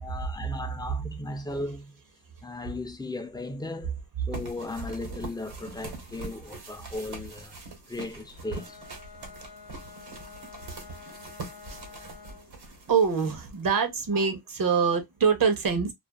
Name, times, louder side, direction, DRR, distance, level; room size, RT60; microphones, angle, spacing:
voice 1, 0.0-2.0 2.4-4.0 4.3-7.6 7.9-8.8 14.1-14.2, left 2 dB, 10° left, 0.4 m, -36 dB
sound 1, 4.3-13.8, right 3 dB, 85° right, 1.2 m, -43 dB
Bowed string instrument, 8.3-12.6, left 5 dB, 75° left, 0.7 m, -48 dB
voice 2, 12.9-15.9, right 6 dB, 60° right, 0.8 m, -24 dB
2.5 x 2.4 x 2.3 m
wide cardioid pair, 100°, 38 cm